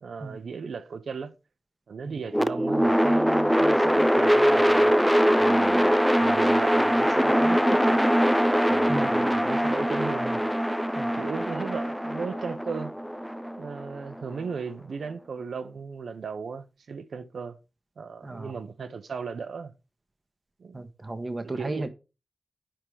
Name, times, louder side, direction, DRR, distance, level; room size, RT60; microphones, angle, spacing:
voice 1, 0.0-1.3 1.9-4.9 5.4-5.9 6.2-8.1 8.7-10.4 11.1-12.9 13.6-17.6 18.0-19.7 20.6-20.8 21.5-21.9, right 5 dB, 85° right, 0.8 m, -36 dB
sound 1, 2.3-14.4, equal, ahead, 0.4 m, -22 dB
voice 2, 8.9-9.3 11.0-11.2 18.2-18.5 20.7-21.9, right 2 dB, 30° right, 1.1 m, -34 dB
10.0 x 3.8 x 4.7 m
wide cardioid pair, 105°, 0 cm